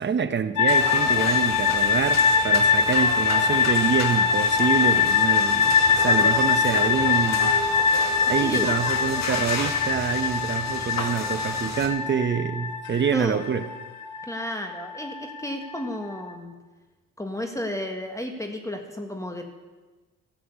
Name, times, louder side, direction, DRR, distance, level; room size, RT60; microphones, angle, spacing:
voice 1, 0.0-7.6 8.2-13.7, right 7 dB, 40° right, 10 dB, 1.0 m, -26 dB
sound 1, 0.6-16.3, left 5 dB, 75° left, 1.2 m, -23 dB
sound 2, 0.7-11.9, left 4 dB, 60° left, 2.0 m, -33 dB
voice 2, 8.4-8.7 13.1-13.4 14.2-16.5 17.2-19.4, left 1 dB, 10° left, 4 dB, 1.5 m, -32 dB
14.0 x 7.9 x 8.3 m, 1.3 s
cardioid pair, 90°, 30 cm